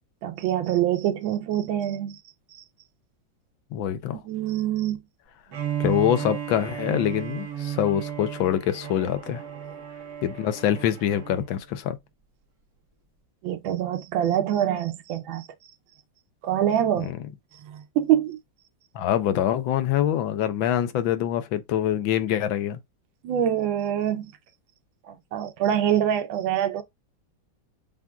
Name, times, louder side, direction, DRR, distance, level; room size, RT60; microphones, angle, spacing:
voice 1, 0.2-2.2 2.5-2.6 4.2-5.0 13.4-15.5 16.4-17.1 17.6-18.4 23.2-24.3 25.0-26.8, right 10 dB, 90° right, 1.4 m, -25 dB
voice 2, 3.7-4.2 5.8-9.4 10.2-12.0 17.0-17.2 18.9-22.8, left 10 dB, 85° left, 1.4 m, -25 dB
Bowed string instrument, 5.5-11.5, right 10 dB, 55° right, 1.6 m, -34 dB
7.1 x 2.5 x 2.3 m
omnidirectional pair, 2.1 m